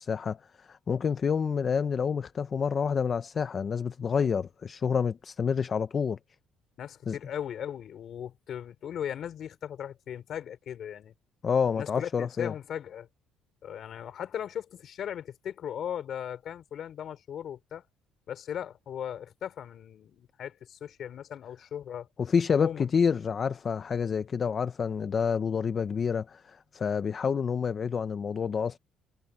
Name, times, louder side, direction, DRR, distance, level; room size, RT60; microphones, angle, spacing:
voice 1, 0.0-6.2 7.1-7.2 11.4-12.5 22.2-28.8, left 6 dB, 30° left, 0.6 m, -28 dB
voice 2, 6.8-11.1 11.7-13.1 13.6-17.8 18.3-22.1 22.5-22.9, left 9 dB, 45° left, 4.9 m, -38 dB
cardioid pair, 150°, 0 cm